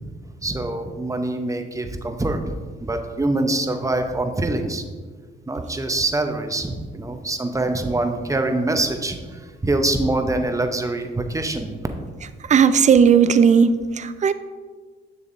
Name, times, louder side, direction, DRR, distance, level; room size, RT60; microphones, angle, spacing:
voice 1, 0.4-2.4 2.8-4.8 5.5-11.7, right 2 dB, 15° right, 6 dB, 0.8 m, -24 dB
voice 2, 12.5-14.3, right 7 dB, 35° right, 12 dB, 0.4 m, -15 dB
7.0 x 6.7 x 2.6 m, 1.5 s
cardioid pair, 65°, 20 cm